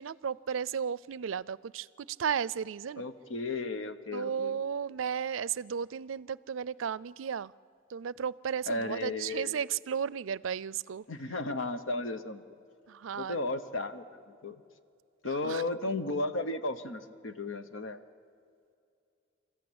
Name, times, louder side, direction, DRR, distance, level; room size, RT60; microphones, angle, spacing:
voice 1, 0.0-3.0 4.1-7.5 7.9-11.0 12.9-13.4 15.2-15.6, right 7 dB, 80° right, 21 dB, 0.4 m, -34 dB
voice 2, 3.0-4.6 8.7-9.6 11.1-12.4 13.1-14.6 15.2-18.0, left 2 dB, 80° left, 10 dB, 1.1 m, -34 dB
27.5 x 14.0 x 8.7 m, 2.4 s
head